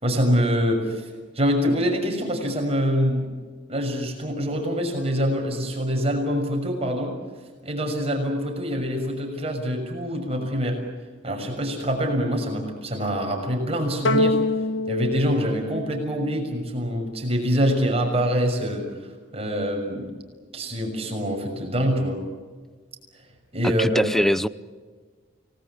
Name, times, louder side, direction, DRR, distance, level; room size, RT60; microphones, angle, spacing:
voice 1, 0.0-1.1 1.3-3.4 3.7-7.2 7.6-10.8 11.2-14.4 14.9-18.9 19.3-20.1 20.5-22.2 23.5-24.1, equal, 30° right, 2 dB, 6.4 m, -25 dB
sound 1, 14.0-16.6, left 2 dB, 70° left, 1.3 m, -25 dB
voice 2, 23.6-24.5, equal, ahead, 14 dB, 0.7 m, -22 dB
30.0 x 19.5 x 8.5 m, 1.4 s
head